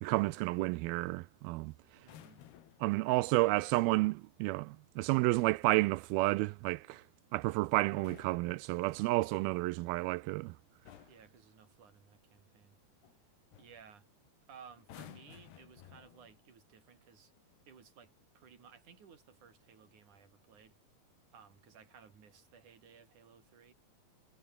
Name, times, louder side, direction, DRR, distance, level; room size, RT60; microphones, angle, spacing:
voice 1, 0.0-1.7 2.8-7.0 7.3-10.5, right 21 dB, 80° right, 2.3 m, -31 dB
sound 1, 2.0-3.0 5.0-5.7 7.8-9.2 10.2-10.5 10.9-11.3 13.0-13.2 13.5-13.8 14.8-16.5 17.4-17.6, left 10 dB, 80° left, 4.1 m, -56 dB
voice 2, 2.0-2.4 3.4-3.8 11.1-12.8 13.6-14.1 14.5-17.3 17.7-20.8 21.3-23.7, right 6 dB, 50° right, 5.2 m, -58 dB
omnidirectional pair, 4.6 m